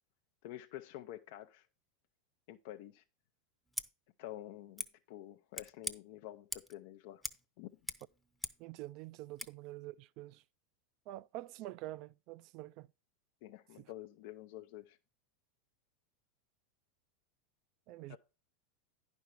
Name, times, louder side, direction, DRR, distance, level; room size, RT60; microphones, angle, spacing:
voice 1, 0.4-1.7 2.5-3.0 4.2-7.3 7.6-7.7 13.4-15.0 18.1-18.2, left 14 dB, 60° left, 0.5 m, -49 dB
Scissors, 3.7-3.9 4.8-4.9 5.5-6.0 6.5-6.8 7.2-7.4 7.7-8.7 9.4-9.5, equal, ahead, 0.7 m, -42 dB
voice 2, 8.6-10.4 11.1-12.9 13.8-13.9 17.9-18.2, right 16 dB, 55° right, 0.4 m, -46 dB
10.5 x 5.2 x 4.6 m
hypercardioid pair, 100°, 0 cm